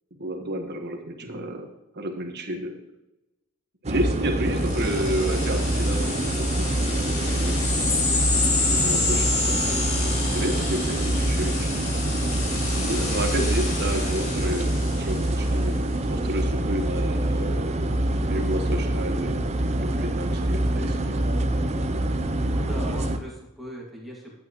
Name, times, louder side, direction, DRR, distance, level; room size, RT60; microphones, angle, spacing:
voice 1, 0.2-1.6 1.9-2.7 3.8-7.9 8.6-11.8 12.7-15.8 16.1-17.7 18.2-21.2, right 1 dB, 50° right, 4 dB, 1.3 m, -31 dB
sound 1, 3.8-23.2, right 1 dB, 30° right, 0.5 m, -25 dB
sound 2, 4.5-15.6, left 3 dB, 65° left, 2.2 m, -29 dB
voice 2, 22.5-24.3, right 1 dB, ahead, -4 dB, 2.0 m, -39 dB
11.5 x 8.3 x 3.0 m, 0.96 s
head